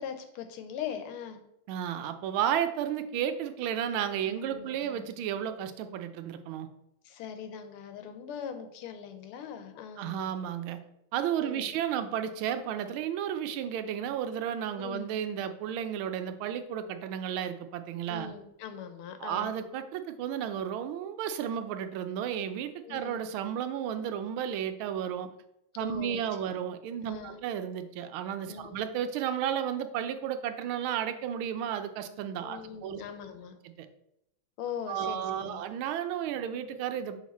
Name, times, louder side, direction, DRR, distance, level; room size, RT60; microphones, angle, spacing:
voice 1, 0.0-1.4 4.2-5.1 7.0-10.1 11.4-11.7 14.8-15.1 18.1-19.5 22.8-23.2 25.8-26.2 26.5-26.6 27.0-27.4 28.5-28.8 32.4-33.6 34.6-35.6, left 8 dB, 85° left, 8 dB, 1.6 m, -41 dB
voice 2, 1.7-6.7 10.0-10.8 11.1-18.3 19.2-25.3 25.8-33.0 33.8-33.9 34.9-37.2, right 9 dB, 80° right, 9 dB, 1.4 m, -33 dB
6.3 x 3.6 x 4.1 m, 0.82 s
omnidirectional pair, 2.3 m